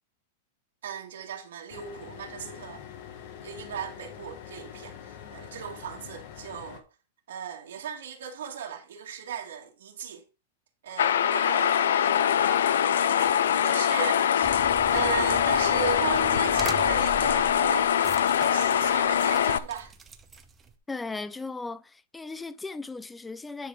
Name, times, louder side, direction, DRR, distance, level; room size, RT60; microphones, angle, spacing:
voice 1, 0.8-2.8 3.4-6.8 7.3-10.2 10.8-18.0 18.5-19.9, right 8 dB, 85° right, 2.0 m, -37 dB
sound 1, 1.7-6.8, left 9 dB, 50° left, 1.3 m, -44 dB
sound 2, 11.0-19.6, left 9 dB, 90° left, 0.6 m, -23 dB
sound 3, 14.4-20.7, right 5 dB, 15° right, 0.9 m, -41 dB
voice 2, 20.9-23.7, left 3 dB, 10° left, 0.4 m, -37 dB
10.0 x 4.1 x 4.7 m
supercardioid pair, 155°, 0 cm